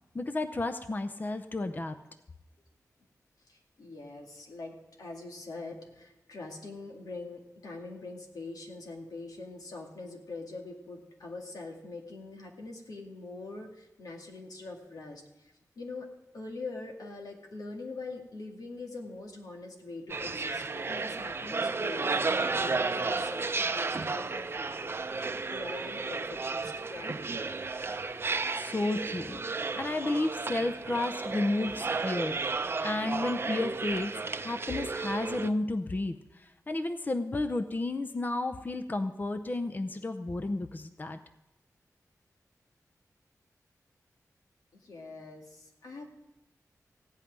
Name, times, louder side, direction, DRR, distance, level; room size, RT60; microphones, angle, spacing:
voice 1, 0.1-1.9 28.5-29.4 29.8-32.4 32.8-34.1 34.4-41.2, left 2 dB, 30° left, 8 dB, 0.6 m, -32 dB
voice 2, 3.5-27.2 44.7-46.1, left 3 dB, 90° left, 1 dB, 2.3 m, -43 dB
sound 1, 20.1-35.5, right 4 dB, 40° right, 0.6 m, -33 dB
16.0 x 5.7 x 9.5 m, 0.92 s
wide cardioid pair, 125°, 6 cm